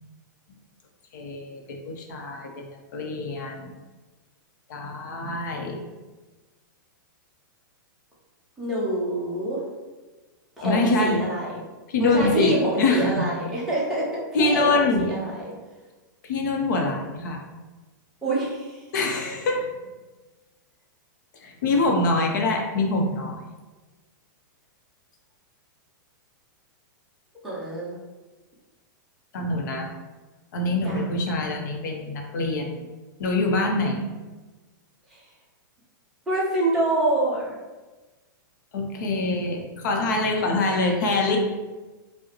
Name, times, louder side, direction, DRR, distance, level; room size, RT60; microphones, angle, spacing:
voice 1, 1.1-3.7 4.7-5.8 10.6-11.2 11.9-13.2 14.3-15.1 16.2-17.4 18.9-19.7 21.4-23.4 29.3-29.9 30.5-32.8 33.2-34.0 38.7-41.4, left 2 dB, 60° left, 2 dB, 0.7 m, -24 dB
voice 2, 8.6-9.6 10.6-11.6 12.0-15.5 18.2-18.9 27.4-28.0 30.8-31.1 35.1-35.2 36.3-37.5, right 1 dB, 5° right, -8 dB, 0.9 m, -26 dB
4.6 x 2.1 x 3.0 m, 1.2 s
supercardioid pair, 160°, 11 cm